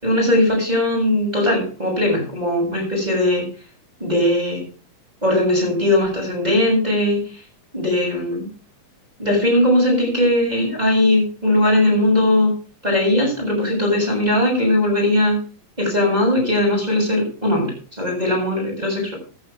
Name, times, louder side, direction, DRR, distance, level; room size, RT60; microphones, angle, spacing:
voice 1, 0.0-3.4 4.0-4.6 5.2-7.2 7.7-8.5 9.2-12.5 12.8-15.4 15.8-19.1, left 1 dB, 10° right, -2 dB, 7.5 m, -19 dB
15.0 x 13.5 x 3.4 m, 0.37 s
omnidirectional pair, 4.1 m